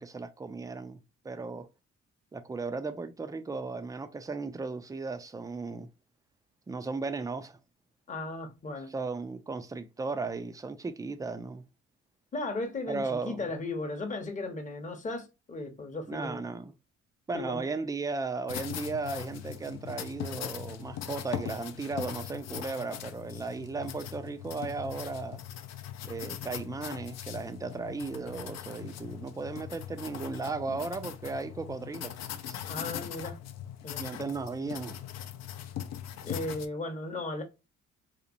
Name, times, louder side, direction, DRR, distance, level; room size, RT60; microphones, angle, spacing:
voice 1, 0.0-1.7 2.3-5.9 6.7-7.6 8.9-11.6 12.9-13.5 16.1-16.7 17.3-25.4 26.0-32.1 32.5-32.6 34.0-35.0, right 3 dB, 10° right, 0.3 m, -36 dB
voice 2, 8.1-8.9 12.3-16.5 17.3-17.6 32.7-33.4 33.8-34.0 36.2-37.4, left 2 dB, 25° left, 0.8 m, -36 dB
sound 1, 18.5-36.7, left 10 dB, 60° left, 0.5 m, -40 dB
2.9 x 2.0 x 2.4 m
cardioid pair, 90°, 30 cm